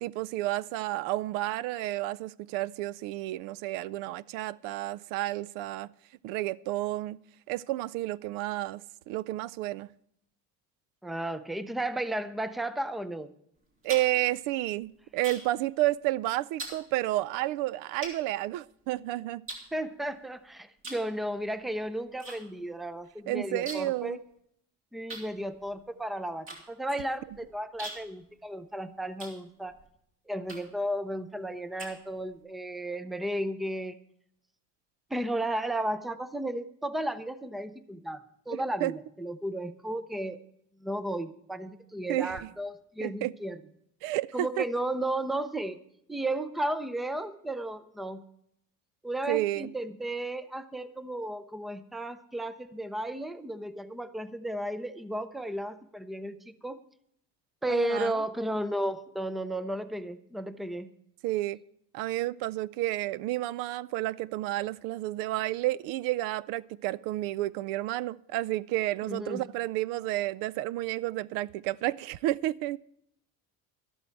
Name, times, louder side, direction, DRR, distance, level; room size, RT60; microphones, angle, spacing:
voice 1, 0.0-5.9 6.2-7.2 7.5-8.8 9.1-9.9 13.8-19.4 23.3-24.2 38.5-38.9 42.1-42.5 43.0-43.3 44.0-44.6 49.3-49.7 57.7-58.2 61.2-61.6 61.9-72.8, right 16 dB, 85° right, 0.5 m, -31 dB
voice 2, 11.0-13.3 19.7-24.2 24.9-29.7 30.3-34.0 35.1-40.4 40.8-43.6 44.3-45.8 46.1-48.2 49.0-56.8 57.6-60.9 69.0-69.4, right 1 dB, ahead, 0.4 m, -34 dB
sound 1, 13.5-15.6 15.9-16.2 16.6-16.8 17.4-17.5 18.0-19.0 19.5-20.3 20.8-21.1 21.4-22.4 22.6-22.7 23.0-24.0 24.3-24.4 25.1-29.9 30.4-30.9 31.3-32.4, right 2 dB, 40° right, 3.3 m, -43 dB
12.5 x 12.5 x 4.5 m
cardioid pair, 145°, 32 cm